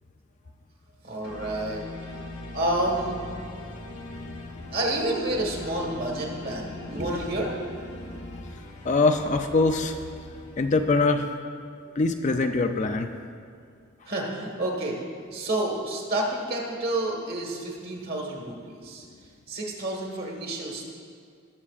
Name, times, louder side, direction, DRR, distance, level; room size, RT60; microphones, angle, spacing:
voice 1, 1.0-1.8 2.5-3.2 4.7-7.6 14.1-15.0 15.3-19.0 19.5-20.9, right 1 dB, 45° right, 0 dB, 1.5 m, -29 dB
sound 1, 1.2-11.1, left 2 dB, 85° left, 1.2 m, -40 dB
voice 2, 8.8-9.9 10.6-11.3 12.0-13.1, left 3 dB, 35° left, 6 dB, 0.4 m, -23 dB
18.0 x 7.4 x 2.5 m, 2.1 s
head